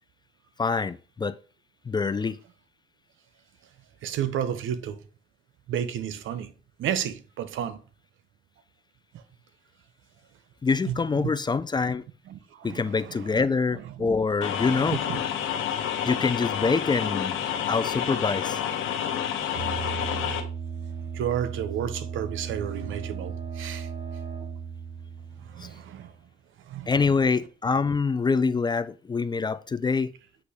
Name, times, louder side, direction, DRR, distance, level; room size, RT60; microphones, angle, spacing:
voice 1, 0.6-1.3 1.9-2.4 10.6-12.0 12.6-15.0 16.0-17.4 17.7-18.6 26.9-30.1, left 4 dB, 20° left, 0.4 m, -25 dB
voice 2, 4.0-5.0 5.7-6.5 6.8-7.8 10.9-11.3 12.3-13.4 13.7-14.1 15.1-15.2 21.1-23.9 25.4-26.1 26.7-26.9, right 9 dB, 75° right, 0.8 m, -32 dB
sound 1, 14.4-20.4, left 9 dB, 85° left, 1.0 m, -29 dB
sound 2, 19.6-26.2, right 6 dB, 55° right, 2.8 m, -36 dB
8.2 x 3.0 x 4.9 m
cardioid pair, 90°, 20 cm